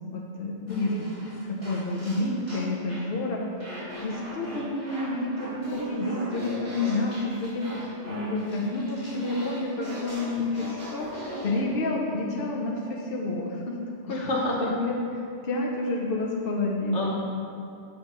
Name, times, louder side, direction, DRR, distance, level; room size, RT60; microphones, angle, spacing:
voice 1, 0.0-1.1 1.5-13.8 14.1-14.2 14.6-14.9 15.4-17.1, left 2 dB, 55° left, -1 dB, 0.9 m, -29 dB
voice 2, 0.7-1.3 12.4-12.6 14.1-14.7 16.9-17.2, left 2 dB, 70° left, -3 dB, 1.5 m, -30 dB
sound 1, 0.7-3.1 3.6-11.6, right 1 dB, 65° right, 2.5 m, -39 dB
7.1 x 4.9 x 5.6 m, 2.5 s
omnidirectional pair, 1.3 m